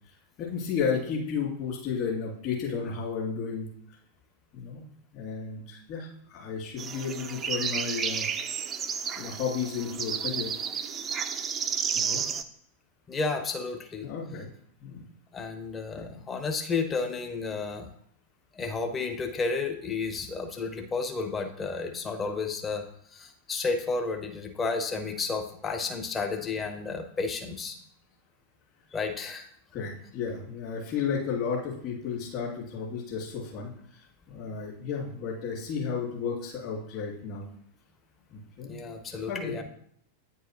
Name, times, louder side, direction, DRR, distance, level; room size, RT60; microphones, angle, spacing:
voice 1, 0.4-3.7 4.5-4.8 5.1-8.3 9.1-10.6 11.9-12.2 14.0-14.5 14.8-15.0 16.0-16.1 29.7-33.7 34.3-37.5 38.3-38.7 39.1-39.6, left 6 dB, 40° left, -4 dB, 2.5 m, -33 dB
sound 1, 6.8-12.4, right 7 dB, 25° right, 0.5 m, -32 dB
voice 2, 13.1-14.1 15.3-17.9 18.5-22.8 23.1-27.8 28.9-29.5 34.3-34.4 38.7-39.6, left 4 dB, 20° left, 6 dB, 0.9 m, -32 dB
9.2 x 4.7 x 3.0 m, 0.67 s
figure-of-eight pair, 90°, 0 cm